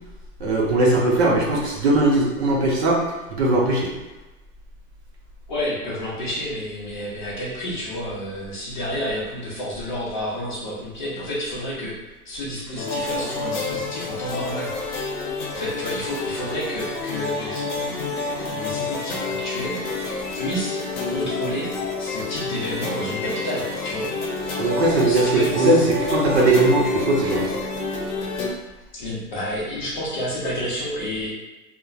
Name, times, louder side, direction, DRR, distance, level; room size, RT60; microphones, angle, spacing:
voice 1, 0.4-3.0 3.3-3.9 24.6-27.5, right 2 dB, 45° right, -2 dB, 0.6 m, -19 dB
voice 2, 5.5-15.0 15.5-20.8 21.1-21.7 22.0-24.1 25.1-25.7 28.9-31.3, equal, 30° left, -6 dB, 0.6 m, -30 dB
sound 1, 12.8-28.5, left 3 dB, 65° left, 0.8 m, -29 dB
2.8 x 2.1 x 2.3 m, 1.1 s
hypercardioid pair, 165°, 47 cm